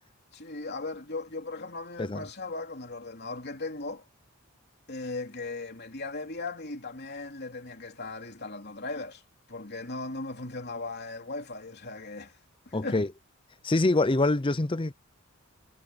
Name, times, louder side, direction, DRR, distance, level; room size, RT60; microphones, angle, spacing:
voice 1, 0.3-4.0 4.9-9.2 9.5-12.4 12.6-13.0, left 3 dB, 45° left, 3.3 m, -37 dB
voice 2, 12.7-13.1 13.6-14.9, left 2 dB, 20° left, 0.6 m, -25 dB
head